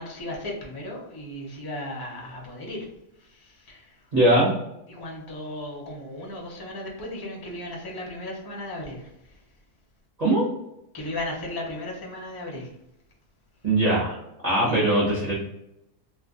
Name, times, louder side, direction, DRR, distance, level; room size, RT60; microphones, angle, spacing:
voice 1, 0.0-2.9 3.2-3.9 4.9-9.1 10.9-12.7 14.6-14.9, left 1 dB, 25° left, -2 dB, 0.5 m, -35 dB
voice 2, 4.1-4.5 10.2-10.5 13.6-14.2 14.4-15.3, right 1 dB, 30° right, -7 dB, 0.8 m, -20 dB
2.5 x 2.4 x 3.7 m, 0.84 s
omnidirectional pair, 1.7 m